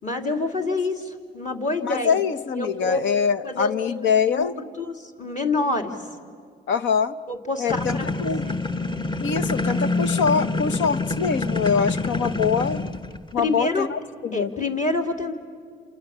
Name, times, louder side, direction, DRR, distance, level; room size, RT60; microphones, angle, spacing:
voice 1, 0.0-2.2 2.5-3.0 3.4-4.0 4.3-6.0 7.3-8.0 8.4-8.5 13.4-13.9 14.3-15.3, left 3 dB, 40° left, 3 dB, 3.3 m, -27 dB
voice 2, 1.8-4.5 6.7-7.2 7.6-8.4 9.2-12.8 13.3-14.5, left 6 dB, 70° left, 13 dB, 0.9 m, -24 dB
sound 1, 7.7-13.3, left 2 dB, 25° left, 1.3 m, -26 dB
28.0 x 28.0 x 7.4 m, 2.1 s
cardioid pair, 90°, 20 cm